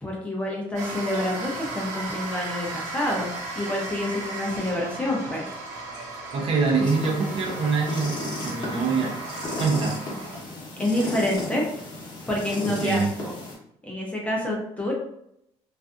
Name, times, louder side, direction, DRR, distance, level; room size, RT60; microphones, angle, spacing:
voice 1, 0.0-5.5 10.8-11.7 12.3-13.4 13.8-14.9, left 1 dB, 10° left, -2 dB, 0.6 m, -27 dB
sound 1, 0.8-10.4, right 3 dB, 80° right, 0.8 m, -36 dB
voice 2, 6.3-9.2 9.6-10.0 12.6-13.1, right 4 dB, 50° right, 0 dB, 0.6 m, -25 dB
sound 2, 6.8-13.5, left 2 dB, 40° left, 0.8 m, -35 dB
2.6 x 2.4 x 2.3 m, 0.76 s
cardioid pair, 160°, 12 cm